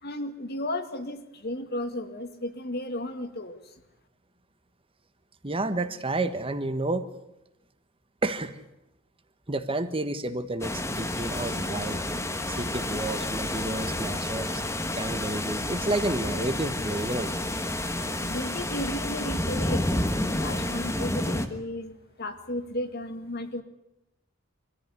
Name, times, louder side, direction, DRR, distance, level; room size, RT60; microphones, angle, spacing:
voice 1, 0.0-3.6 18.2-20.0 20.4-21.9 22.2-23.6, left 1 dB, 50° left, 8 dB, 2.1 m, -34 dB
voice 2, 5.4-7.1 8.2-8.6 9.5-12.0 12.5-14.6 15.0-17.3, right 2 dB, 25° right, 10 dB, 1.4 m, -30 dB
sound 1, 10.6-21.5, left 1 dB, 15° left, 1.4 m, -30 dB
24.5 x 14.5 x 9.9 m, 0.89 s
head